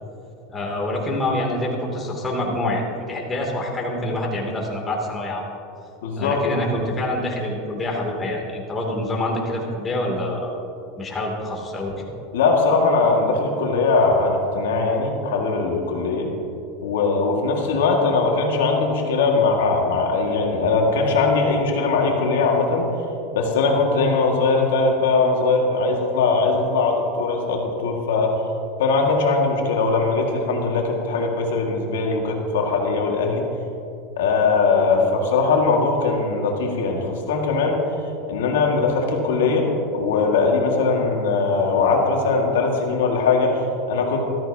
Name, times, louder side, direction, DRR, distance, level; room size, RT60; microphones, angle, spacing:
voice 1, 0.5-5.5 6.2-10.5 11.0-12.1, left 1 dB, 20° left, -1 dB, 2.7 m, -26 dB
voice 2, 6.0-6.4 12.3-16.3 16.8-22.9 23.3-28.4 28.8-33.4 34.2-37.8 38.3-39.7 39.9-44.3, left 4 dB, 85° left, 1 dB, 1.9 m, -20 dB
14.0 x 13.5 x 2.8 m, 2.7 s
supercardioid pair, 110°, 0 cm